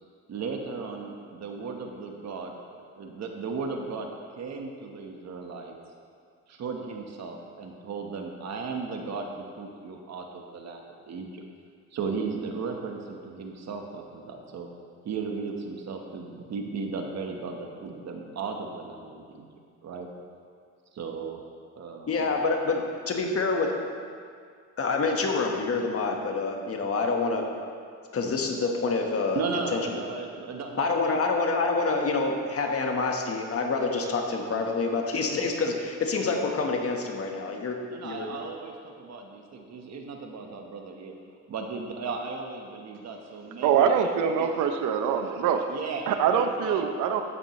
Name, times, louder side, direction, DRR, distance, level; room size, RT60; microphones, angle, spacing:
voice 1, 0.3-2.6 3.0-4.1 4.4-5.7 6.5-11.4 11.9-14.7 15.0-19.5 19.8-20.1 20.9-21.4 21.8-22.3 29.3-31.2 37.9-41.1 41.5-44.5 45.7-46.8, right 4 dB, 60° right, 2 dB, 1.3 m, -36 dB
voice 2, 22.1-23.7 24.8-27.4 28.1-29.4 29.7-29.9 30.8-38.4, left 3 dB, 50° left, 2 dB, 1.4 m, -27 dB
voice 3, 43.6-45.6 46.1-47.2, right 7 dB, 85° right, 7 dB, 0.8 m, -24 dB
12.5 x 8.7 x 3.2 m, 2.2 s
cardioid pair, 90°, 30 cm